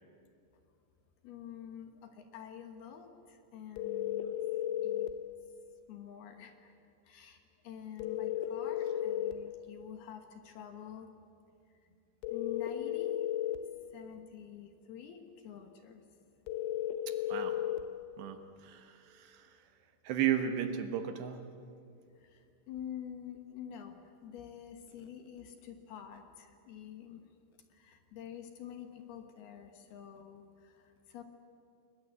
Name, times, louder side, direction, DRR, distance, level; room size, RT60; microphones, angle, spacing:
voice 1, 1.2-4.4 4.8-5.1 5.9-6.7 7.0-11.1 12.3-13.3 13.9-16.0 22.1-27.2 27.7-31.2, left 9 dB, 65° left, 5 dB, 3.0 m, -48 dB
sound 1, 3.8-5.2 8.0-9.4 12.2-13.7 16.5-17.9, left 11 dB, 85° left, 3.5 m, -34 dB
voice 2, 17.1-17.5 18.2-19.5 20.0-21.4, right 9 dB, 70° right, 7 dB, 3.1 m, -34 dB
30.0 x 20.5 x 8.2 m, 2.5 s
omnidirectional pair, 5.4 m